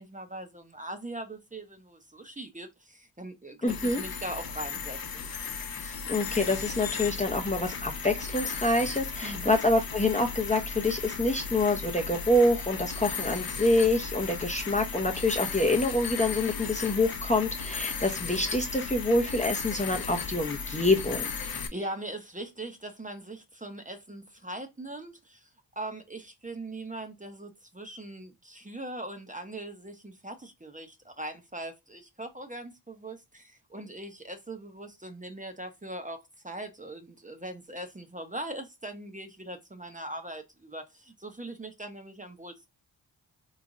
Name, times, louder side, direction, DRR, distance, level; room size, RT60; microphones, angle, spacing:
voice 1, 0.0-5.3 9.2-9.5 21.4-25.5 25.8-42.7, right 1 dB, 15° right, 0.8 m, -41 dB
voice 2, 3.6-4.0 5.8-21.3, left 2 dB, 15° left, 0.7 m, -26 dB
sound 1, 3.7-21.7, left 5 dB, 50° left, 0.8 m, -35 dB
3.4 x 3.2 x 2.5 m
cardioid pair, 45°, 45 cm